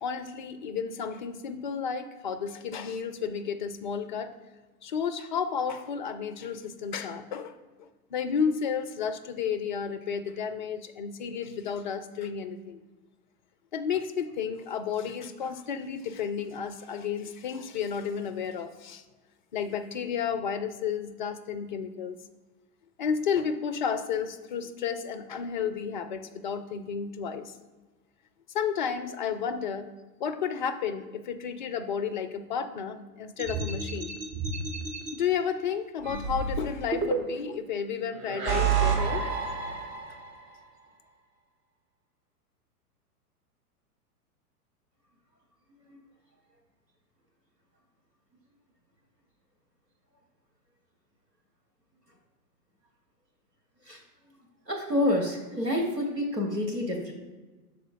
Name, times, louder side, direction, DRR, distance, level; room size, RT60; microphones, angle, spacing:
voice 1, 0.0-4.3 4.8-7.5 7.8-12.8 13.7-19.0 19.5-22.2 23.0-27.5 28.5-29.9 30.2-34.1 35.1-39.2, left 7 dB, 35° left, 9 dB, 0.4 m, -32 dB
sound 1, 33.4-35.1 36.0-37.6 38.2-40.4, right 5 dB, 35° right, 1.2 m, -29 dB
voice 2, 54.7-57.1, left 1 dB, 90° right, 1 dB, 1.6 m, -28 dB
6.7 x 4.3 x 4.6 m, 1.2 s
figure-of-eight pair, 100°, 47 cm